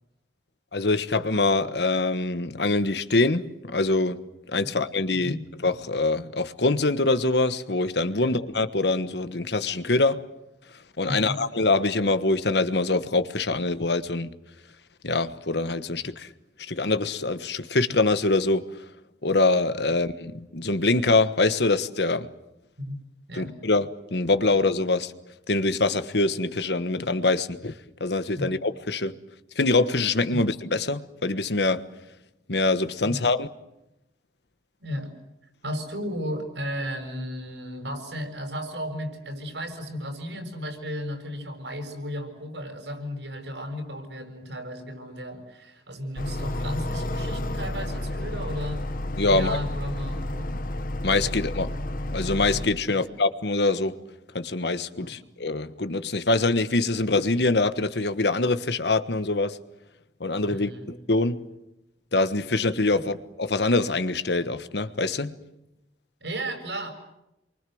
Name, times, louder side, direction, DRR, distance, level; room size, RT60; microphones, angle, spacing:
voice 1, 0.7-5.4 5.6-10.2 11.0-14.3 15.0-16.3 16.6-18.8 19.2-22.3 23.4-25.1 25.5-27.7 28.0-29.2 29.5-31.8 32.5-33.5 49.2-49.6 51.0-51.7 52.1-54.0 54.3-59.6 60.2-61.5 62.1-65.3, left 2 dB, 70° left, 1.4 m, -24 dB
voice 2, 11.0-11.4 22.8-23.0 23.3-23.5 28.4-28.5 30.3-30.4 33.0-33.2 34.8-35.1 35.6-48.8 49.3-50.5 52.9-53.0 55.0-55.1 60.5-60.9 66.2-66.9, equal, 80° right, 7.0 m, -34 dB
sound 1, 46.2-52.7, left 1 dB, 50° left, 1.2 m, -31 dB
29.0 x 24.0 x 7.9 m
head